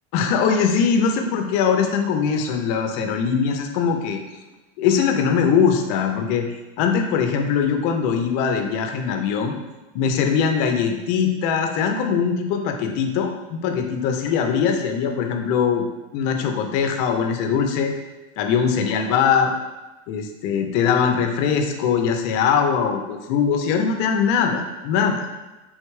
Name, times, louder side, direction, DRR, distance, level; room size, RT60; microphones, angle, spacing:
voice 1, 0.1-4.2 4.8-6.5 6.8-9.6 9.9-15.8 16.1-17.9 18.4-19.5 20.1-25.2, left 6 dB, 60° left, 4 dB, 0.7 m, -21 dB
3.5 x 3.2 x 3.1 m, 1.1 s
supercardioid pair, 110°, 37 cm